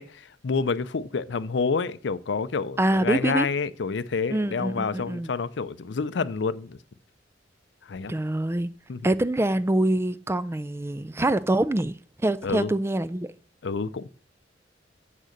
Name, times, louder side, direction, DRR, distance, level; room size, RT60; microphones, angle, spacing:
voice 1, 0.0-6.8 7.8-8.1 8.9-9.0 12.4-12.7 13.6-14.1, left 4 dB, 70° left, 0.5 m, -28 dB
voice 2, 2.8-3.5 4.3-5.3 8.1-8.7 9.0-13.3, right 1 dB, 15° right, 0.4 m, -25 dB
7.6 x 6.5 x 6.5 m
head